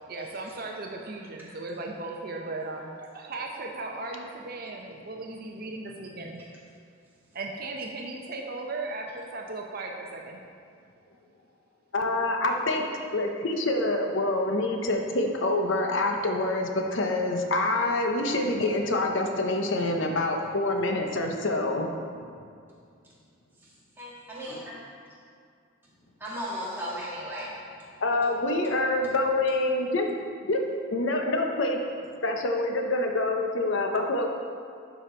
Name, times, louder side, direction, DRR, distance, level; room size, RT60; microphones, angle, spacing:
voice 1, 0.1-6.4 7.3-10.4, right 2 dB, 45° right, 1 dB, 0.6 m, -37 dB
voice 2, 11.9-12.8 13.1-21.9 28.0-30.1 30.4-30.7 30.9-31.9 32.2-34.3, left 2 dB, 60° left, 2 dB, 0.7 m, -26 dB
voice 3, 24.0-24.7 26.2-27.5, equal, 10° right, -8 dB, 2.0 m, -35 dB
11.5 x 5.0 x 4.4 m, 2.3 s
head